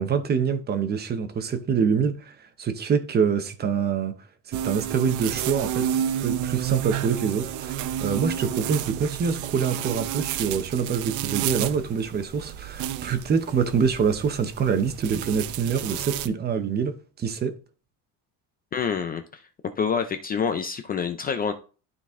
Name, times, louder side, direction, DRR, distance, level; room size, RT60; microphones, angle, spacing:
voice 1, 0.0-4.1 4.5-5.9 6.2-17.5, right 6 dB, 30° right, 0.8 m, -25 dB
sound 1, 4.5-16.3, right 11 dB, 60° right, 0.6 m, -31 dB
voice 2, 18.7-19.4 19.8-21.5, left 6 dB, 25° left, 0.4 m, -27 dB
11.5 x 4.0 x 3.6 m
cardioid pair, 170°, 35 cm